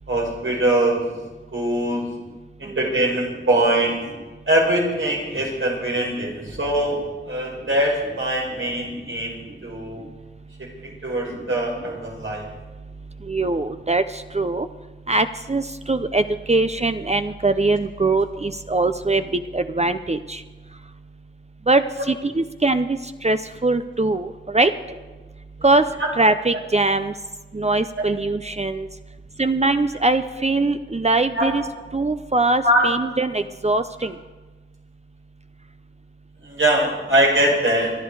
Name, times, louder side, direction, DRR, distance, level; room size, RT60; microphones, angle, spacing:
voice 1, 0.1-1.0 1.5-2.1 2.6-4.0 4.5-7.0 7.3-10.0 10.8-12.4 26.0-26.1 28.0-28.1 31.3-31.5 32.6-32.9 36.4-37.9, right 1 dB, 75° right, -2 dB, 4.9 m, -22 dB
voice 2, 13.2-14.7 15.1-20.4 21.7-24.7 25.6-25.9 26.2-27.1 27.5-28.9 29.4-31.7 31.9-34.2, right 2 dB, 35° right, 10 dB, 0.6 m, -22 dB
25.5 x 11.0 x 4.8 m, 1.2 s
wide cardioid pair, 55°, 20 cm